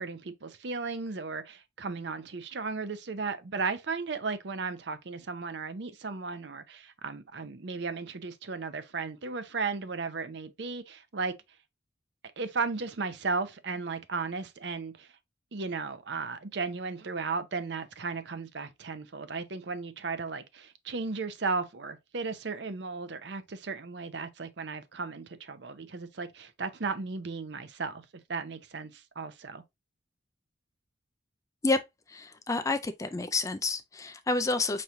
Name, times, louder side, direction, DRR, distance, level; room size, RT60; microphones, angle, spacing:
voice 1, 0.0-11.3 12.4-15.1 15.5-28.0 28.3-29.6, right 4 dB, 60° right, 0.6 m, -35 dB
voice 2, 32.1-34.8, left 3 dB, 15° left, 0.3 m, -29 dB
5.7 x 3.2 x 2.6 m
head